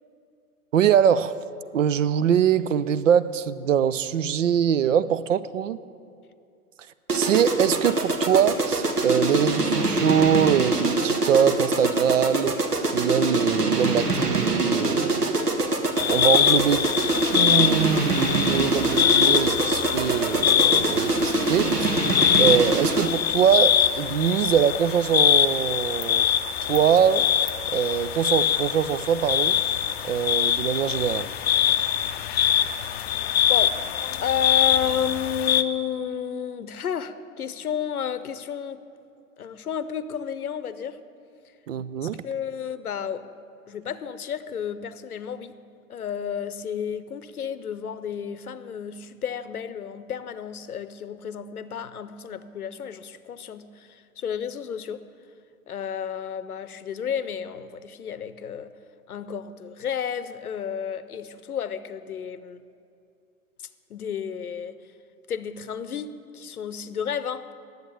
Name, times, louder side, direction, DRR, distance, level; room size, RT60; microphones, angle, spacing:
voice 1, 0.7-1.4 1.7-5.8 7.1-12.6 12.9-15.3 16.0-16.9 17.2-22.0 22.4-26.3 26.6-27.3 27.7-29.6 30.0-31.3 41.7-42.2, right 8 dB, 55° right, 0.5 m, -23 dB
sound 1, 7.1-23.3, right 2 dB, 90° right, 1.1 m, -25 dB
sound 2, 16.0-35.6, left 10 dB, 45° left, 0.5 m, -23 dB
voice 2, 33.5-33.9 34.2-38.8 39.4-41.0 42.0-43.3 43.7-45.6 45.9-55.0 55.7-58.7 59.1-62.6 63.9-64.8 65.3-67.5, left 8 dB, 75° left, 0.7 m, -31 dB
10.5 x 7.9 x 8.2 m
figure-of-eight pair, 110°, 45 cm